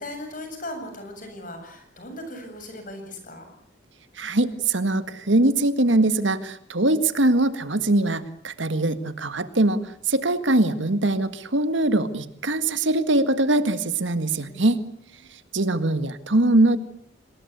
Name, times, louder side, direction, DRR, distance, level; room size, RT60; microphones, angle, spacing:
voice 1, 0.0-3.5 14.3-15.0, left 1 dB, 45° left, 6 dB, 7.7 m, -38 dB
voice 2, 4.2-14.8 15.5-16.8, right 2 dB, 70° right, 11 dB, 1.8 m, -22 dB
27.0 x 20.5 x 8.2 m, 0.64 s
head